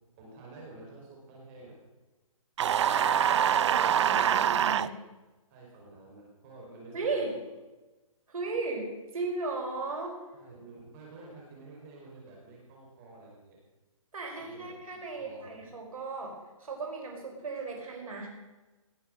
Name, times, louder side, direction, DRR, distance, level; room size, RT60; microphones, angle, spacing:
voice 1, 0.1-1.8 2.9-4.3 4.7-5.0 5.5-7.2 10.3-13.6 14.4-14.7 15.1-15.5, right 2 dB, 30° right, -3 dB, 5.2 m, -50 dB
sound 1, 2.6-4.9, right 9 dB, 55° right, 0.5 m, -25 dB
voice 2, 2.9-4.9 6.9-7.3 8.3-10.1 14.1-16.3 16.6-18.3, right 3 dB, 80° right, 0 dB, 5.5 m, -36 dB
19.5 x 8.4 x 6.6 m, 1.1 s
hypercardioid pair, 150°, 18 cm